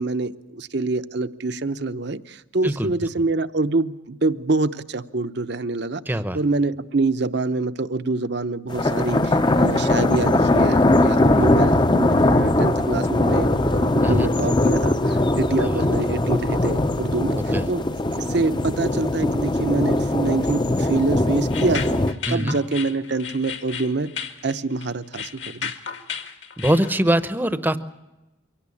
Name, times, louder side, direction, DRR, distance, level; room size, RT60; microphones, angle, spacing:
voice 1, 0.0-6.0 6.3-17.4 17.7-17.8 18.3-22.0 22.3-25.7, right 3 dB, 55° right, 11 dB, 0.8 m, -26 dB
voice 2, 6.1-6.4 14.0-14.3 15.6-15.9 17.4-17.6 22.3-22.6 26.6-27.8, right 1 dB, 10° right, 12 dB, 0.8 m, -23 dB
sound 1, 8.7-22.1, left 1 dB, 25° left, 0.7 m, -20 dB
sound 2, 21.5-27.0, left 7 dB, 65° left, 1.9 m, -34 dB
24.0 x 17.5 x 8.6 m, 1.0 s
head